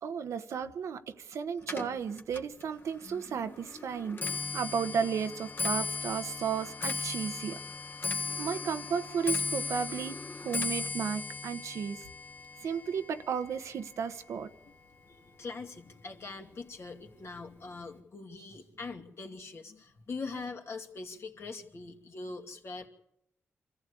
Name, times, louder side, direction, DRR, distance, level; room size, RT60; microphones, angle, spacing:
voice 1, 0.0-7.6 8.4-12.0 12.6-14.5, right 7 dB, 90° right, 1.0 m, -34 dB
Clock, 1.6-15.0 15.3-15.8 16.6-16.7 17.0-17.4 17.6-17.7, left 4 dB, 40° left, 1.7 m, -37 dB
voice 2, 15.1-22.9, left 3 dB, 60° left, 2.6 m, -42 dB
25.0 x 14.5 x 8.4 m
cardioid pair, 75°, 5 cm